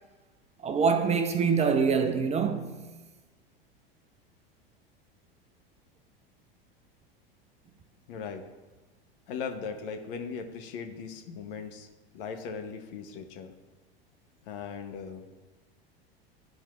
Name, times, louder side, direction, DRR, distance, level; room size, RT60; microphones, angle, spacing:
voice 1, 0.6-2.9, right 5 dB, 20° right, 0.5 m, -25 dB
voice 2, 8.1-8.4 9.3-11.9 12.1-13.5 14.4-15.3, left 6 dB, 65° left, 1.0 m, -38 dB
11.5 x 4.5 x 2.4 m
hypercardioid pair, 90°, 30 cm